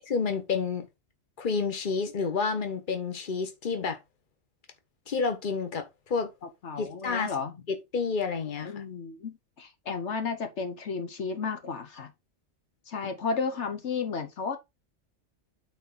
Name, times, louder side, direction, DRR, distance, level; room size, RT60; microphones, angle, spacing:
voice 1, 0.1-0.9 1.4-4.0 5.1-6.3 6.8-7.3 7.7-8.8, left 5 dB, 45° left, 1.4 m, -29 dB
voice 2, 6.6-7.5 8.6-12.1 12.9-14.6, left 5 dB, 75° left, 1.3 m, -33 dB
9.0 x 4.3 x 3.9 m
omnidirectional pair, 1.2 m